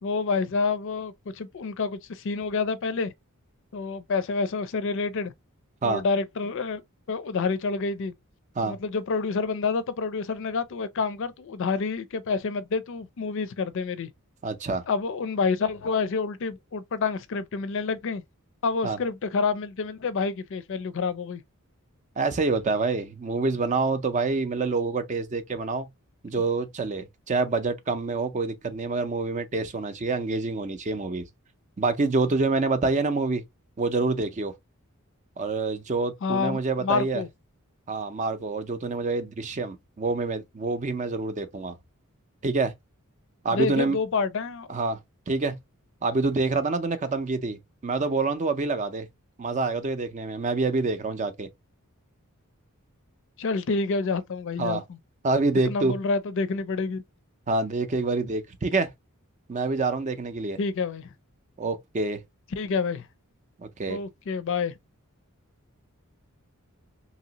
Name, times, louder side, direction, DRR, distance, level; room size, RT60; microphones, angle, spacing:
voice 1, 0.0-3.1 3.7-5.3 5.8-6.8 7.1-8.1 8.6-14.1 14.9-18.2 18.6-21.4 36.2-37.3 43.5-44.7 53.4-55.0 55.7-57.0 60.6-61.1 62.5-63.1 63.9-64.7, left 4 dB, 60° left, 0.4 m, -28 dB
voice 2, 14.4-14.8 18.8-19.0 22.2-25.9 26.2-31.2 31.8-33.4 33.8-34.5 35.4-37.2 37.9-41.7 42.4-42.7 43.4-44.0 44.7-45.0 45.3-45.6 46.0-49.1 49.4-51.5 54.6-54.8 55.2-56.0 57.5-58.9 59.5-60.6 61.6-62.2 63.6-64.0, right 3 dB, 35° right, 0.5 m, -27 dB
2.9 x 2.9 x 2.8 m
head